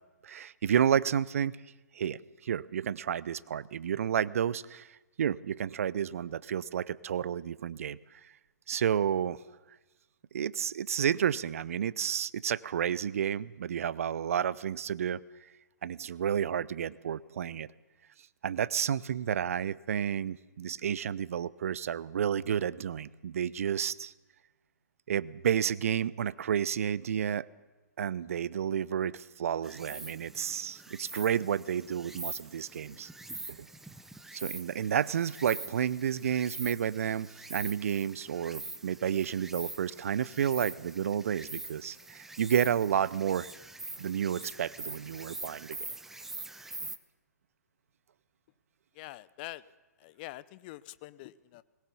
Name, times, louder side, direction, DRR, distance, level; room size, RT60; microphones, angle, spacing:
voice 1, 0.2-1.6 1.9-4.9 5.2-8.0 8.7-9.4 10.3-15.2 15.8-17.7 18.4-24.1 25.1-27.5 28.0-33.1 33.5-33.6 34.3-43.5 44.0-45.8, right 9 dB, 55° right, 20 dB, 0.7 m, -31 dB
Insect, 29.6-47.0, right 2 dB, 5° right, 0.8 m, -44 dB
voice 2, 49.0-49.6 50.0-51.6, left 17 dB, 30° left, 17 dB, 0.7 m, -45 dB
20.5 x 18.5 x 7.1 m, 1.1 s
figure-of-eight pair, 125°, 9 cm